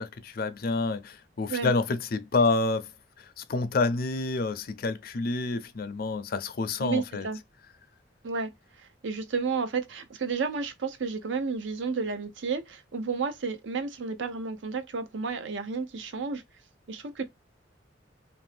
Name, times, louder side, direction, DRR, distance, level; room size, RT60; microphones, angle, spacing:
voice 1, 0.0-2.9 3.2-7.3, left 3 dB, 55° left, 0.5 m, -28 dB
voice 2, 6.8-7.4 8.2-8.5 8.8-16.4 16.9-17.2, right 4 dB, 80° right, 0.6 m, -31 dB
2.7 x 2.6 x 3.2 m
head